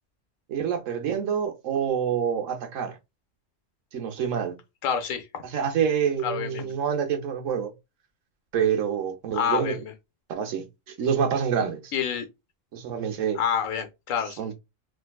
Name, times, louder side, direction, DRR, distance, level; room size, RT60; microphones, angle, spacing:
voice 1, 0.5-2.9 3.9-4.6 5.5-7.7 8.5-9.8 10.3-11.9 12.7-13.4 14.4-14.5, right 7 dB, 80° right, 1.1 m, -27 dB
voice 2, 4.8-5.4 6.2-6.7 9.3-9.9 11.9-12.3 13.3-14.5, left 7 dB, 90° left, 1.1 m, -28 dB
3.6 x 2.6 x 2.2 m
omnidirectional pair, 1.3 m